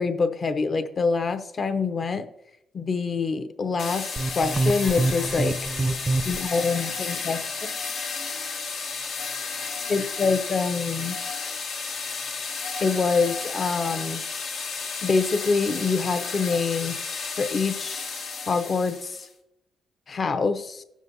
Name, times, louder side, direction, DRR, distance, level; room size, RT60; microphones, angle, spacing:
voice 1, 0.0-2.3 2.7-5.6 6.2-7.4 9.9-11.2 12.8-14.2 15.0-17.0 17.4-18.1 18.5-19.3 20.1-20.8, left 4 dB, 45° left, 9 dB, 0.7 m, -25 dB
sound 1, 3.8-19.3, left 4 dB, 85° left, 1.3 m, -33 dB
sound 2, 4.2-6.9, right 2 dB, 20° right, 0.5 m, -27 dB
15.5 x 6.1 x 2.7 m, 0.86 s
cardioid pair, 110°, 0 cm